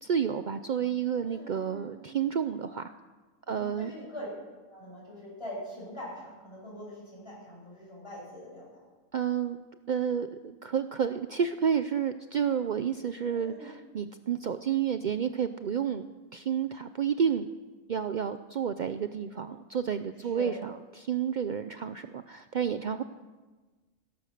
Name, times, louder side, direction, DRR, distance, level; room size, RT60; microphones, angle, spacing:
voice 1, 0.0-2.9 3.5-3.9 9.1-9.6 9.9-16.1 16.3-17.5 17.9-23.0, right 8 dB, 80° right, 10 dB, 0.4 m, -30 dB
voice 2, 1.2-1.9 3.4-4.3 4.7-8.8 13.3-13.7 20.2-20.6, equal, 20° left, -5 dB, 6.8 m, -43 dB
17.0 x 13.0 x 6.6 m, 1.3 s
omnidirectional pair, 1.5 m